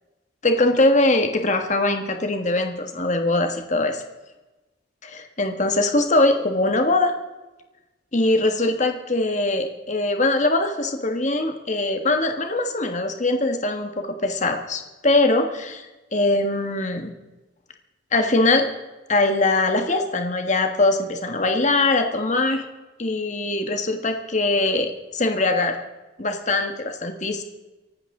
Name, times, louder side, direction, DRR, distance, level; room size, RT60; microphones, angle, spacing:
voice 1, 0.4-4.0 5.1-7.1 8.1-15.8 16.1-17.1 18.1-18.7 19.1-22.6 23.0-25.8 26.2-27.4, left 2 dB, 40° left, 5 dB, 1.6 m, -22 dB
24.5 x 11.5 x 3.8 m, 1.1 s
head